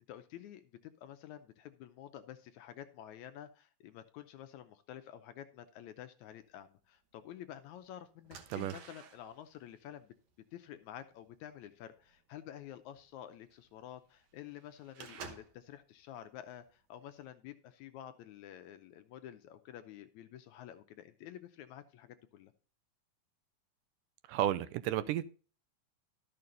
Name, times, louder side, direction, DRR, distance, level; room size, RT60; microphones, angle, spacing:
voice 1, 0.0-10.1 10.5-22.5, left 11 dB, 75° left, 10 dB, 1.8 m, -50 dB
sound 1, 6.8-6.9 7.6-7.8 8.2-15.7 16.2-16.6 17.0-17.2, right 6 dB, 65° right, 2.3 m, -53 dB
voice 2, 24.3-25.2, right 12 dB, 80° right, 13 dB, 2.1 m, -32 dB
12.5 x 6.7 x 3.9 m, 0.37 s
omnidirectional pair, 3.9 m